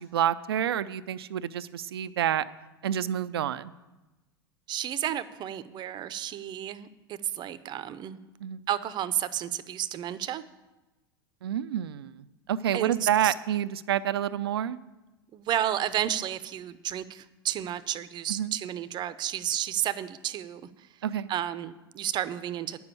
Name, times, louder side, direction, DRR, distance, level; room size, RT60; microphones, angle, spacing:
voice 1, 0.0-2.4 2.8-3.7 8.4-8.7 11.4-12.1 12.5-14.8 18.3-18.5 21.0-21.3, right 10 dB, 80° right, 14 dB, 0.5 m, -28 dB
voice 2, 4.7-8.2 8.7-10.4 12.7-13.3 15.3-20.9 21.3-22.8, right 11 dB, 35° right, 15 dB, 0.6 m, -32 dB
9.5 x 7.0 x 8.3 m, 1.1 s
hypercardioid pair, 95°, 13 cm